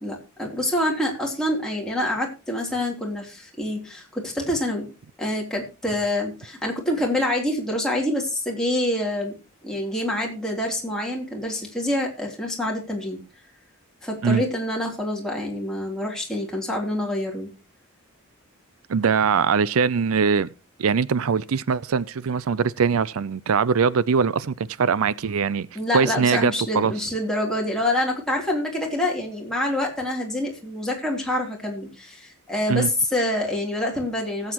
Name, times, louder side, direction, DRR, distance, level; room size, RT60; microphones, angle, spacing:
voice 1, 0.0-4.9 5.2-9.3 9.6-13.2 14.0-17.5 25.7-34.5, left 1 dB, 5° left, 3.2 m, -26 dB
voice 2, 18.9-20.5 20.8-25.7 25.9-26.9 32.7-32.9, right 6 dB, 75° right, 0.5 m, -22 dB
19.0 x 8.2 x 3.0 m
head